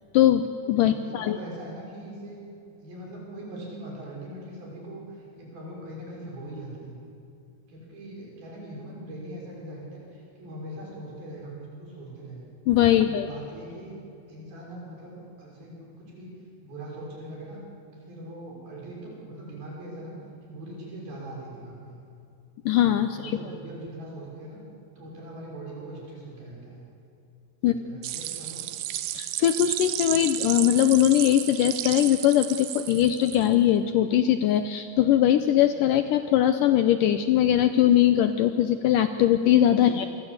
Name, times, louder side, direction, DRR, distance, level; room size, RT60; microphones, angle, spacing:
voice 1, 0.1-1.4 12.7-13.3 22.7-23.4 27.6-27.7 29.1-40.1, left 11 dB, 85° left, 9 dB, 1.9 m, -21 dB
voice 2, 0.8-2.4 2.8-7.0 7.7-12.5 12.9-13.9 14.3-16.3 16.6-17.6 17.9-20.1 20.4-22.0 23.1-24.6 25.0-26.8 27.6-28.7 39.8-40.1, right 1 dB, 65° right, -3 dB, 7.8 m, -41 dB
sound 1, 28.0-33.5, right 13 dB, 80° right, 2.9 m, -32 dB
27.5 x 23.0 x 8.2 m, 2.6 s
omnidirectional pair, 4.7 m